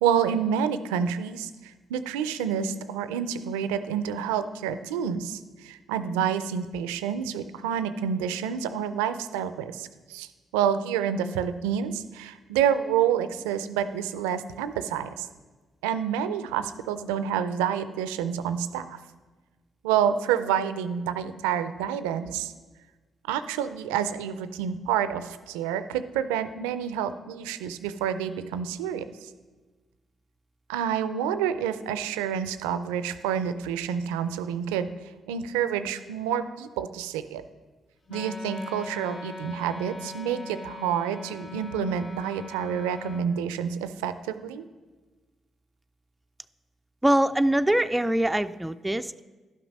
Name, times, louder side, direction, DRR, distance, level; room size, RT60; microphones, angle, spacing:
voice 1, 0.0-15.3 15.8-19.0 19.8-22.5 23.3-29.3 30.7-34.9 35.3-37.4 38.1-44.7, right 8 dB, 90° right, 12 dB, 0.4 m, -28 dB
Wind instrument woodwind instrument, 38.1-43.3, left 4 dB, 50° left, 0.9 m, -40 dB
voice 2, 47.0-49.2, right 1 dB, 10° right, 9 dB, 0.3 m, -23 dB
11.5 x 6.0 x 5.3 m, 1.3 s
hypercardioid pair, 45°, 0 cm